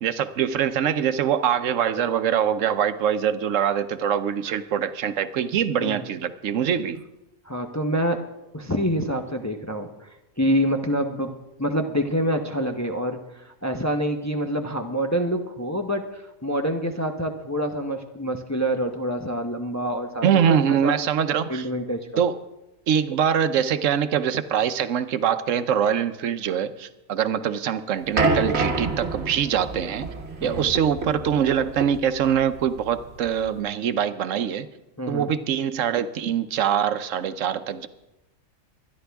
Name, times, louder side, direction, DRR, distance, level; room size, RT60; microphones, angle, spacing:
voice 1, 0.0-7.0 20.2-21.7 22.2-22.3 22.9-30.1 30.4-34.7 35.1-37.9, right 8 dB, 75° right, 11 dB, 1.0 m, -23 dB
voice 2, 7.5-8.2 8.5-9.9 10.4-11.3 11.6-13.2 13.6-20.9 21.5-22.2 30.4-30.7 35.0-35.3, equal, 15° left, 4 dB, 0.7 m, -26 dB
sound 1, 28.2-33.6, right 3 dB, 55° right, 1.4 m, -28 dB
24.0 x 10.5 x 3.5 m, 0.97 s
omnidirectional pair, 1.3 m